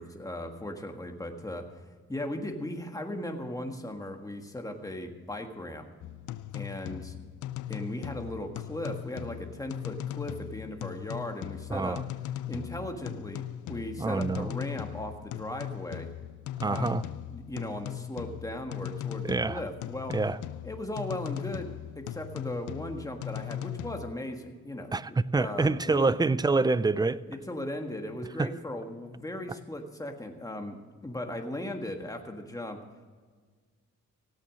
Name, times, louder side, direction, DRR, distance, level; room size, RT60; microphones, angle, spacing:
voice 1, 0.0-1.7 2.1-5.9 6.5-7.2 7.7-12.0 12.5-16.1 16.7-16.9 17.3-20.2 20.6-26.1 27.3-32.8, left 1 dB, 10° left, 1.6 m, -37 dB
sound 1, 6.0-24.1, left 12 dB, 85° left, 0.5 m, -39 dB
voice 2, 11.7-12.0 14.0-14.5 16.6-17.0 19.2-19.6 20.1-20.4 24.9-27.2 28.4-28.5, right 3 dB, 15° right, 0.4 m, -26 dB
16.0 x 8.3 x 6.4 m
cardioid pair, 100°, 29 cm